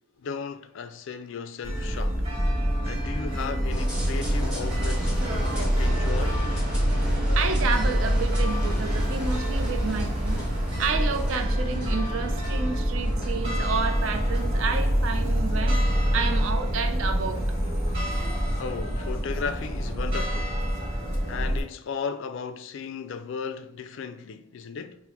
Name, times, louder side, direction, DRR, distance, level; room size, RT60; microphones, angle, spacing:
voice 1, 0.2-2.2 2.9-5.3 5.6-6.4 18.6-20.6 21.3-25.0, left 6 dB, 60° left, 0.3 m, -35 dB
sound 1, 1.6-21.6, equal, 30° right, 1.2 m, -26 dB
sound 2, 3.7-14.9, equal, 5° right, 1.4 m, -31 dB
voice 2, 7.4-10.4 10.8-15.8 16.1-17.4, right 5 dB, 65° right, 0.4 m, -30 dB
5.7 x 2.0 x 2.9 m
head